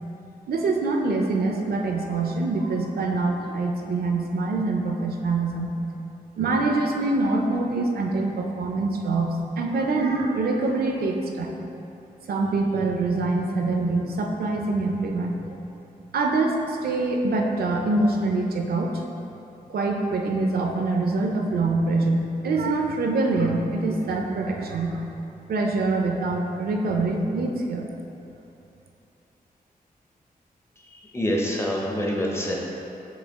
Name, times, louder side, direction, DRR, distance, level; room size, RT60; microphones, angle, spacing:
voice 1, 0.5-5.7 6.4-9.3 9.6-11.6 12.3-15.6 16.1-19.1 19.7-25.1 25.5-27.9, right 3 dB, 80° right, 2 dB, 0.5 m, -25 dB
voice 2, 30.8-32.6, equal, 15° left, -2 dB, 0.5 m, -26 dB
6.3 x 2.3 x 3.5 m, 2.8 s
wide cardioid pair, 135°, 16 cm